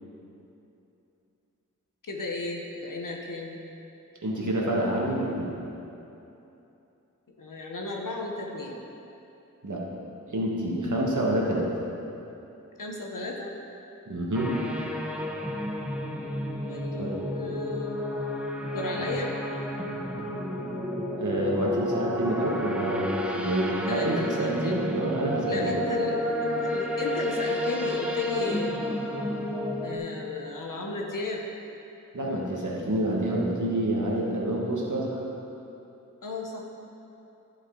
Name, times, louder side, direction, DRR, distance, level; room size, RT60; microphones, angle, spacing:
voice 1, 2.0-3.6 7.4-8.8 12.8-13.5 14.3-14.4 16.6-18.1 18.6-19.3 23.9-24.8 25.5-28.8 29.8-31.4 36.2-36.6, left 3 dB, 75° left, 0 dB, 1.0 m, -34 dB
voice 2, 4.2-5.6 9.6-9.8 10.3-11.7 14.1-14.5 16.9-17.5 21.2-23.1 23.3-25.8 32.1-35.2, right 1 dB, 65° right, -3 dB, 1.5 m, -28 dB
sound 1, 14.3-30.0, left 1 dB, 5° right, 0.8 m, -31 dB
11.0 x 5.2 x 3.9 m, 2.9 s
wide cardioid pair, 45°, 33 cm